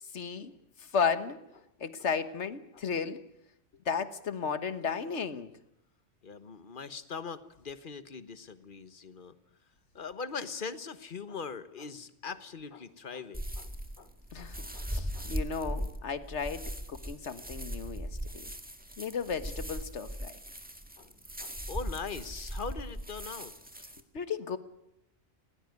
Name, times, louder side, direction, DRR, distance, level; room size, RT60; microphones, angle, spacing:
voice 1, 0.1-0.5 0.8-1.4 1.8-3.2 3.8-5.5 14.3-18.5 19.0-20.3 24.1-24.6, left 6 dB, 65° left, 12 dB, 1.6 m, -34 dB
voice 2, 6.2-9.4 9.9-13.7 14.0-14.1 14.4-14.9 15.1-15.3 21.0-21.1 21.4-23.5, left 5 dB, 45° left, 13 dB, 1.3 m, -41 dB
sound 1, 13.3-24.0, equal, 5° right, 1.7 m, -39 dB
20.0 x 18.0 x 9.6 m, 0.84 s
omnidirectional pair, 1.3 m